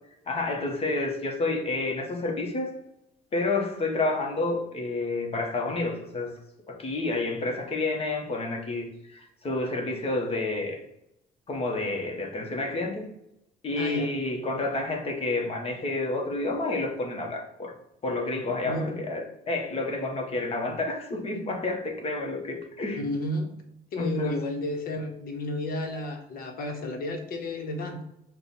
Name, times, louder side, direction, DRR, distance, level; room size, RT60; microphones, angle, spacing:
voice 1, 0.3-2.7 3.3-6.3 6.7-10.8 11.5-13.1 13.6-17.7 18.0-23.0 24.0-24.4, left 2 dB, 35° left, 1.1 m, -29 dB
voice 2, 13.8-14.1 18.6-19.0 23.0-23.5 23.9-28.0, left 1 dB, 60° left, 1.0 m, -32 dB
5.5 x 2.3 x 4.1 m
cardioid pair, 110°, 17 cm